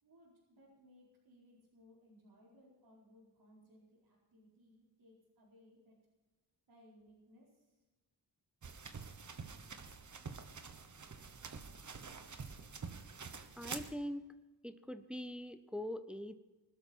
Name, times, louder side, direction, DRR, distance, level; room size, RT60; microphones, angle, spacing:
voice 1, 0.0-6.0 6.7-7.8, left 1 dB, 80° right, -6 dB, 5.0 m, -64 dB
sound 1, 8.6-13.9, right 5 dB, 45° right, 1.3 m, -47 dB
voice 2, 13.6-14.3 14.6-16.3, equal, 5° right, 10 dB, 0.6 m, -43 dB
20.5 x 13.0 x 4.5 m, 1.2 s
wide cardioid pair, 160°, 40 cm